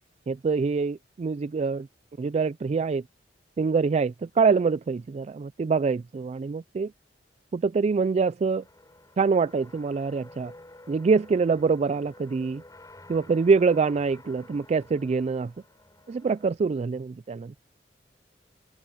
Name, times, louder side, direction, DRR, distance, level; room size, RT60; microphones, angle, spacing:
voice 1, 0.3-1.9 2.2-3.0 3.6-6.9 7.5-8.6 9.2-10.5 10.9-12.6 13.1-15.5 16.1-17.5, right 5 dB, 35° right, 0.3 m, -25 dB
sound 1, 8.6-16.5, left 2 dB, 20° left, 4.6 m, -51 dB
head